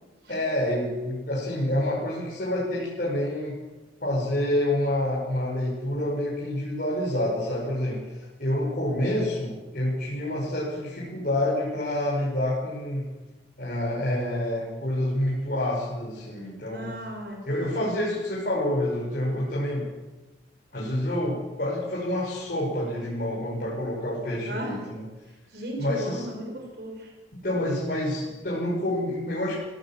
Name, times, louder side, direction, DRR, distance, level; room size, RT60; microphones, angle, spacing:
voice 1, 0.3-3.6 4.0-13.1 13.6-16.9 17.5-19.9 20.7-25.0 25.8-26.3 27.4-29.5, left 1 dB, 50° left, -6 dB, 5.8 m, -28 dB
voice 2, 16.7-17.5 24.5-24.8 25.5-27.1, right 1 dB, 60° right, 1 dB, 5.4 m, -35 dB
24.5 x 16.5 x 7.4 m, 1.2 s
head